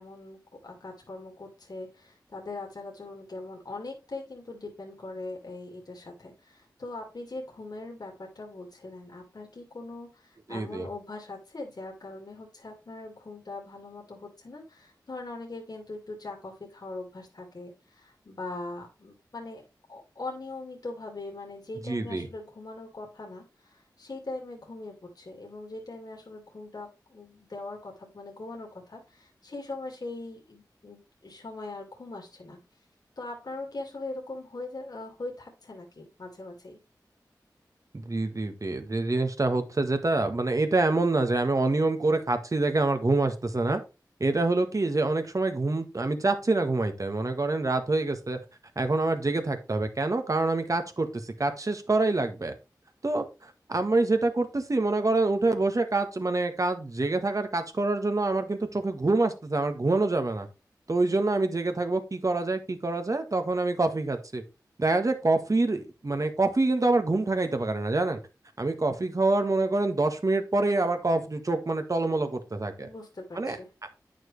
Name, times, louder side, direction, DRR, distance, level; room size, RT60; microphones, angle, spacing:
voice 1, 0.0-19.6 19.9-32.6 33.2-36.8 72.8-73.7, left 2 dB, 60° left, 0 dB, 2.3 m, -41 dB
voice 2, 10.5-10.9 21.9-22.3 37.9-43.8 44.2-48.4 48.7-52.5 53.0-60.5 60.9-64.4 64.8-68.2 68.6-72.9 73.3-73.6, right 2 dB, 50° right, 7 dB, 1.7 m, -26 dB
9.3 x 6.1 x 3.3 m, 0.28 s
cardioid pair, 40°, 7 cm